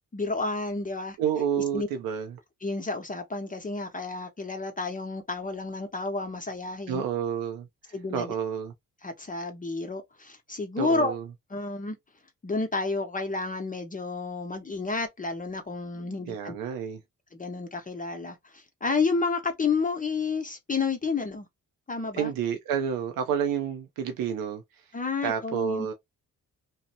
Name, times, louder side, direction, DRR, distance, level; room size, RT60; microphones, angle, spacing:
voice 1, 0.1-1.2 1.6-1.9 2.6-7.0 7.9-8.3 9.0-11.1 11.5-12.0 12.4-16.6 17.3-21.5 21.9-22.3 24.9-25.9, left 4 dB, 25° left, 0.7 m, -30 dB
voice 2, 1.2-2.4 6.9-8.7 10.8-11.3 16.0-17.0 22.1-24.9 25.2-25.9, right 8 dB, 85° right, 0.5 m, -30 dB
2.6 x 2.0 x 2.7 m
cardioid pair, 65°, 34 cm